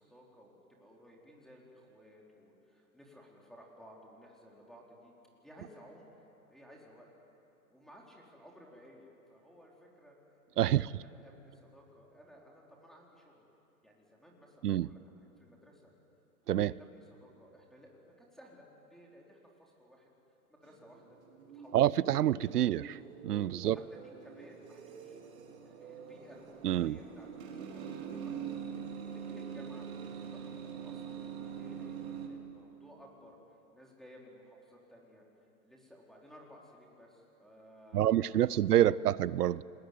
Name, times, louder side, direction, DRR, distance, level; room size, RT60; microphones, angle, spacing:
voice 1, 0.0-5.1 5.4-6.1 6.5-7.1 7.7-10.2 10.5-13.5 13.8-15.9 16.8-20.1 20.5-21.2 21.5-22.3 22.6-22.7 23.6-25.3 25.6-31.2 31.5-33.4 33.7-35.2 35.6-39.0, equal, ahead, -2 dB, 4.1 m, -57 dB
voice 2, 10.6-10.9 14.6-14.9 16.5-16.8 21.7-23.0 23.2-23.8 26.6-27.0 37.9-39.6, right 12 dB, 85° right, 21 dB, 0.7 m, -27 dB
sound 1, 20.6-32.3, right 7 dB, 65° right, 4.4 m, -44 dB
29.0 x 21.5 x 9.4 m, 2.7 s
hypercardioid pair, 125°, 45 cm